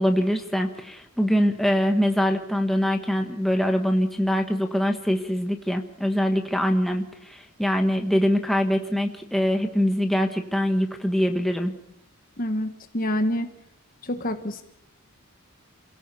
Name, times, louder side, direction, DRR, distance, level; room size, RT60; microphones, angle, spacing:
voice 1, 0.0-11.7, equal, ahead, 4 dB, 1.3 m, -23 dB
voice 2, 12.4-13.5 14.0-14.6, left 1 dB, 40° left, 6 dB, 1.4 m, -27 dB
28.0 x 17.0 x 7.0 m, 0.78 s
head